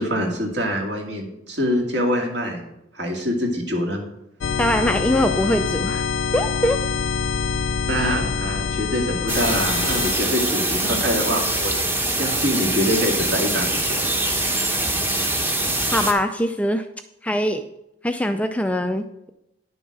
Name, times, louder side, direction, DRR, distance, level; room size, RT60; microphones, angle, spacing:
voice 1, 0.0-2.6 2.9-4.0 7.9-11.7 12.0-14.0, equal, 60° right, 1 dB, 2.1 m, -25 dB
sound 1, 4.4-10.1, left 5 dB, 75° left, 0.5 m, -25 dB
voice 2, 4.6-6.1 6.3-6.8 15.9-16.8 17.2-17.6 18.0-19.3, equal, 5° left, 7 dB, 0.3 m, -22 dB
sound 2, 9.3-16.1, right 1 dB, 10° right, 0.9 m, -23 dB
10.0 x 7.0 x 4.8 m, 0.86 s
head